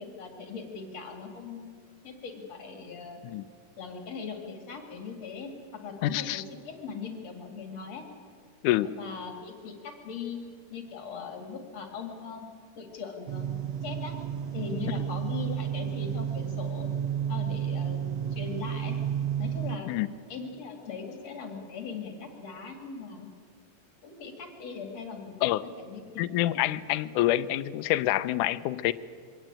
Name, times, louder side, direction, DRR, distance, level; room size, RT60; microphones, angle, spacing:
voice 1, 0.0-1.7 2.0-3.2 3.8-8.1 8.9-10.4 10.7-13.6 13.8-14.2 14.5-16.9 17.3-19.0 19.4-19.9 20.3-23.3 24.0-26.3, left 5 dB, 55° left, 4 dB, 3.4 m, -40 dB
voice 2, 6.0-6.4 8.6-8.9 19.9-20.1 25.4-25.7 26.2-28.9, left 14 dB, 75° left, 13 dB, 2.1 m, -27 dB
sound 1, 13.3-19.8, right 9 dB, 75° right, 1.6 m, -31 dB
23.5 x 17.5 x 9.0 m, 2.1 s
omnidirectional pair, 3.8 m